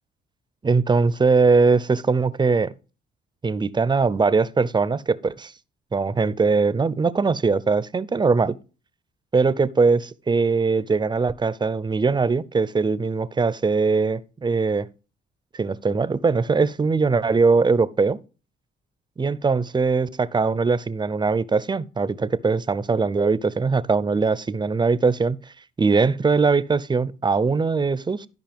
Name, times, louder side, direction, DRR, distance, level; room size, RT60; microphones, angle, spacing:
voice 1, 0.6-2.7 3.4-5.5 5.9-8.6 9.3-14.9 15.5-18.2 19.2-25.4 25.8-28.3, right 4 dB, 20° right, 0.5 m, -21 dB
13.0 x 5.3 x 3.5 m
cardioid pair, 90°, 20 cm